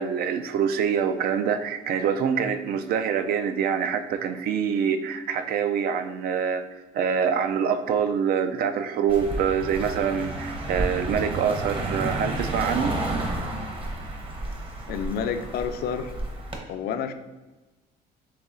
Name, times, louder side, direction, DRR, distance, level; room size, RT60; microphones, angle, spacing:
voice 1, 0.0-6.7 6.9-13.0, right 7 dB, 65° right, 9 dB, 0.4 m, -25 dB
Car passing by, 9.1-16.6, right 2 dB, 30° right, 0.9 m, -31 dB
voice 2, 14.9-16.1 16.7-17.1, left 7 dB, 65° left, 8 dB, 0.4 m, -29 dB
4.0 x 3.2 x 3.7 m, 1.2 s
cardioid pair, 110°, 17 cm